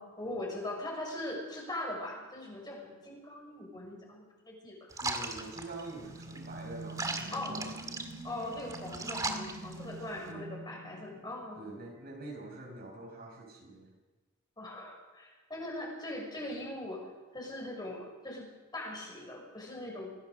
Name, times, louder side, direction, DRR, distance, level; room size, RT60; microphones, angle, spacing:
voice 1, 0.0-5.0 7.3-7.6 8.2-11.6 14.6-17.1 17.3-18.5 18.7-20.1, left 1 dB, 20° left, -1 dB, 6.1 m, -41 dB
sound 1, 4.9-10.3, right 3 dB, 15° right, 2.0 m, -39 dB
voice 2, 5.0-8.1 10.3-10.5 11.6-13.9, right 2 dB, 45° right, 1 dB, 6.0 m, -45 dB
sound 2, 5.3-11.9, right 1 dB, 70° right, 4.6 m, -46 dB
24.5 x 18.0 x 6.6 m, 1.2 s
head